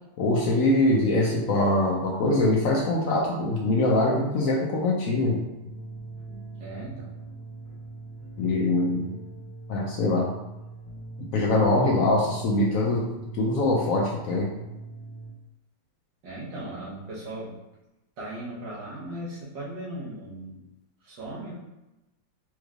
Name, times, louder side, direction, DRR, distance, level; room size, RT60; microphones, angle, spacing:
voice 1, 0.2-5.4 8.4-9.2 9.7-10.3 11.3-13.0 13.4-14.5, left 2 dB, 70° left, -2 dB, 0.8 m, -23 dB
sound 1, 5.6-15.3, right 3 dB, 40° left, 1.5 m, -41 dB
voice 2, 6.6-7.1 16.2-17.6 18.2-20.6 21.0-21.5, right 1 dB, 90° right, -7 dB, 1.8 m, -37 dB
4.3 x 3.2 x 2.4 m, 0.97 s
omnidirectional pair, 1.9 m